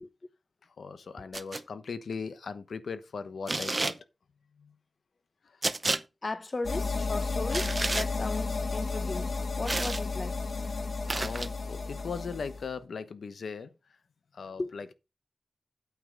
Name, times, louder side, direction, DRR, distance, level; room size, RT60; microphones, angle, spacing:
voice 1, 0.8-3.9 4.6-4.7 11.1-13.7 14.3-14.9, left 5 dB, 90° left, 1.1 m, -38 dB
sound 1, 1.3-1.6 3.5-4.0 5.6-6.0 7.5-8.1 9.7-10.0 11.1-11.5, right 2 dB, 30° right, 0.7 m, -30 dB
voice 2, 6.2-10.4 14.6-14.8, left 3 dB, 40° left, 0.8 m, -36 dB
sound 2, 6.6-12.7, left 3 dB, 60° left, 1.8 m, -32 dB
8.7 x 5.9 x 5.2 m
wide cardioid pair, 110°, 0 cm